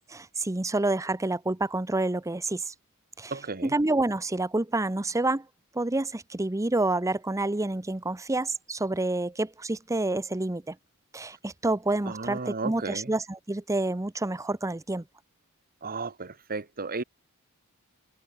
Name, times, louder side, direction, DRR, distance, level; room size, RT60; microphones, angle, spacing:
voice 1, 0.0-2.7 3.2-3.3 3.6-5.5 5.7-10.8 11.1-15.0, right 2 dB, 15° right, 0.7 m, -28 dB
voice 2, 3.3-3.7 12.0-13.1 15.8-17.0, right 3 dB, 40° right, 1.6 m, -34 dB
open air
head